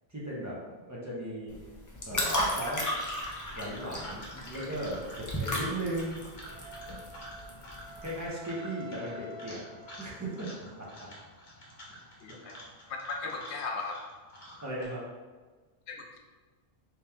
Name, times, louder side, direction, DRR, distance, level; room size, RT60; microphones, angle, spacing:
voice 1, 0.1-1.6 2.1-2.9 3.5-6.2 8.0-9.6 10.0-11.1 14.6-15.0, right 1 dB, 15° right, -6 dB, 0.8 m, -37 dB
sound 1, 1.5-8.2, equal, 25° left, 0.4 m, -34 dB
sound 2, 2.6-14.8, equal, 45° left, 0.9 m, -49 dB
Wind instrument woodwind instrument, 6.5-10.4, left 2 dB, 50° right, 0.7 m, -48 dB
voice 2, 12.2-12.6 12.9-14.1 15.9-16.2, left 3 dB, 80° left, 1 dB, 0.9 m, -37 dB
3.2 x 3.0 x 3.5 m, 1.3 s
omnidirectional pair, 1.1 m